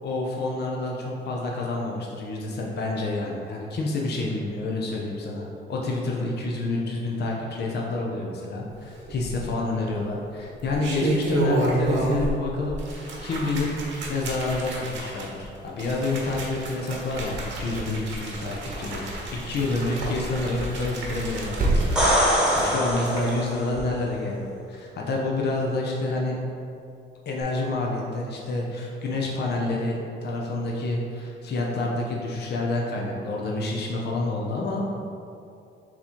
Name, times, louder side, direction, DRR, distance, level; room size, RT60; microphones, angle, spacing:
voice 1, 0.0-13.7 14.1-19.0 19.3-24.4 24.7-26.4 27.3-34.8, left 2 dB, 55° left, -2 dB, 0.7 m, -28 dB
sound 1, 9.1-9.7 10.5-12.4 12.7-23.3 23.7-23.8, right 2 dB, 70° right, 1.1 m, -31 dB
sound 2, 16.6-17.3 17.7-18.8 19.1-19.2 19.5-19.7 20.0-20.1 20.4-23.0, right 2 dB, 45° right, 1.0 m, -30 dB
sound 3, 21.8-23.7 27.4-27.5, equal, 5° right, 1.2 m, -23 dB
4.0 x 2.9 x 4.3 m, 2.6 s
cardioid pair, 90°, 20 cm